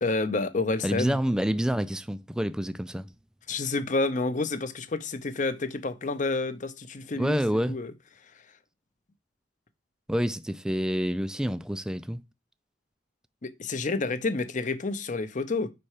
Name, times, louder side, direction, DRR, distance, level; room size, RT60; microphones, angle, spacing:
voice 1, 0.0-1.2 3.5-7.4 7.7-7.9 13.4-15.7, left 3 dB, 40° left, 0.7 m, -29 dB
voice 2, 0.8-3.1 7.1-7.8 10.1-12.2, equal, 5° right, 0.3 m, -28 dB
5.4 x 4.3 x 4.8 m
head